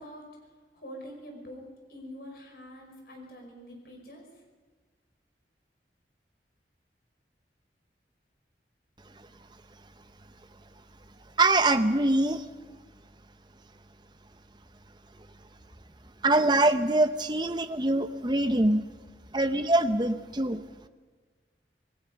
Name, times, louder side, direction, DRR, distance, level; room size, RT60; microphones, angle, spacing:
voice 1, 0.0-4.4, equal, 60° left, 1 dB, 5.7 m, -46 dB
voice 2, 11.4-12.5 16.2-18.8 19.3-20.6, right 2 dB, 25° right, 9 dB, 0.9 m, -24 dB
26.5 x 18.0 x 5.4 m, 1.4 s
head